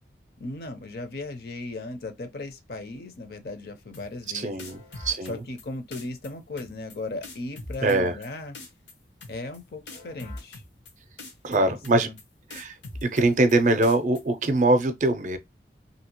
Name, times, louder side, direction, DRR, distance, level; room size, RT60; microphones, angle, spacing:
voice 1, 0.4-4.7 5.3-8.6 9.3-10.6 11.5-12.2, left 2 dB, 55° left, 0.6 m, -37 dB
sound 1, 3.9-4.3 4.6-5.6 5.9-6.3 6.6-7.0 7.2-8.3 8.5-8.9 9.2-9.6 9.9-10.9 11.2-11.6 11.8-12.2 12.5-13.5 13.8-14.2, left 2 dB, 85° left, 1.0 m, -41 dB
voice 2, 4.3-5.4 7.8-8.1 11.4-12.1 12.5-12.8 13.0-15.4, right 2 dB, 45° right, 0.5 m, -23 dB
2.8 x 2.7 x 2.9 m
head